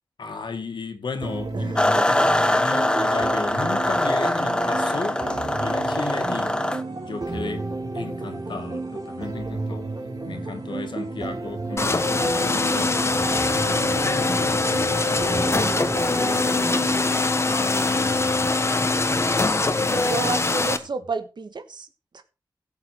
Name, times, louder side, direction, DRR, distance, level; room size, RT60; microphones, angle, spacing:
voice 1, 0.2-5.2 5.6-6.5 7.0-7.7 7.9-9.9 10.2-16.8 17.4-18.6 19.5-20.3, left 4 dB, 75° left, 2.1 m, -35 dB
sound 1, 1.2-17.2, right 2 dB, 50° right, 3.9 m, -32 dB
voice 2, 1.5-2.5 6.3-6.4 18.6-19.2 19.7-21.9 22.1-22.2, right 4 dB, 70° right, 1.5 m, -33 dB
sound 2, 1.8-6.8, left 1 dB, 10° left, 0.9 m, -23 dB
sound 3, 11.8-20.8, left 3 dB, 35° left, 1.2 m, -22 dB
16.5 x 6.8 x 4.6 m
wide cardioid pair, 110°, 8 cm